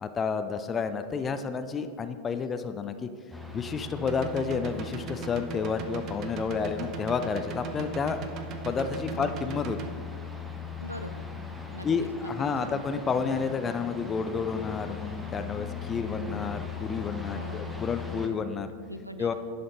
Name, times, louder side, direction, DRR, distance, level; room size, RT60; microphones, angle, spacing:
voice 1, 0.0-3.1 3.5-8.2 8.6-9.8 11.8-18.7 19.2-19.3, left 5 dB, 20° left, 10 dB, 0.4 m, -30 dB
sound 1, 3.3-18.3, left 5 dB, ahead, 0.8 m, -40 dB
sound 2, 4.0-9.9, right 9 dB, 35° right, 0.6 m, -39 dB
voice 2, 10.8-11.2 11.7-12.1 12.7-12.8 17.3-17.8 18.9-19.3, equal, 90° right, 10 dB, 0.4 m, -42 dB
10.5 x 5.2 x 3.8 m, 2.1 s
figure-of-eight pair, 90°, 0 cm